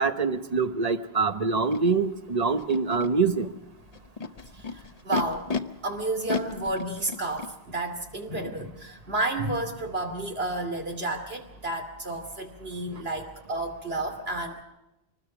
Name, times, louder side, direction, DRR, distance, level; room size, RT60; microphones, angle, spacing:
voice 1, 0.0-3.5, right 4 dB, 40° right, 10 dB, 1.2 m, -25 dB
Animal, 1.7-1.8 2.6-3.1 3.9-5.6 6.3-7.5, left 4 dB, 40° left, 1.0 m, -32 dB
voice 2, 4.7-5.4 5.8-14.6, right 2 dB, 70° right, 4 dB, 3.0 m, -31 dB
24.5 x 20.0 x 6.1 m, 0.94 s
omnidirectional pair, 1.1 m